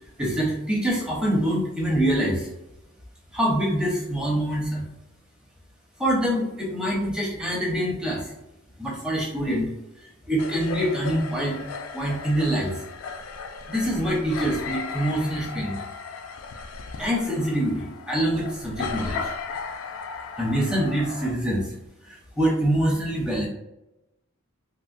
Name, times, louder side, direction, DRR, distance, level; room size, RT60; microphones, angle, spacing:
voice 1, 0.2-2.5 3.3-4.8 6.0-8.3 8.8-9.7 10.3-11.6 11.9-12.8 13.7-15.8 17.0-19.3 20.4-21.7 22.1-23.5, right 1 dB, 5° right, -3 dB, 0.6 m, -25 dB
sound 1, 10.4-21.3, left 5 dB, 65° left, 0.3 m, -36 dB
3.7 x 2.0 x 2.5 m, 0.92 s
head